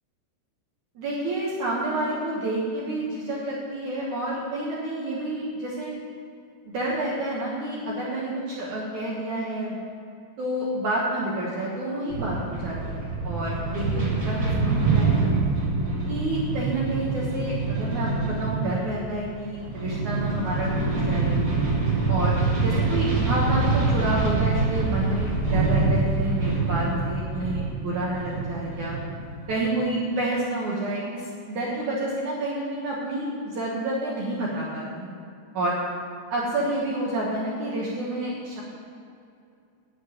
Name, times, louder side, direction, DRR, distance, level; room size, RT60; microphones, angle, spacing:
voice 1, 1.0-6.0 6.7-9.7 10.4-15.3 16.1-21.4 22.1-29.0 29.5-35.1 35.5-35.8 36.3-38.6, right 1 dB, 60° right, -5 dB, 2.2 m, -29 dB
sound 1, 12.1-29.6, right 3 dB, 25° right, 3.1 m, -25 dB
9.4 x 7.7 x 9.4 m, 2.5 s
omnidirectional pair, 5.0 m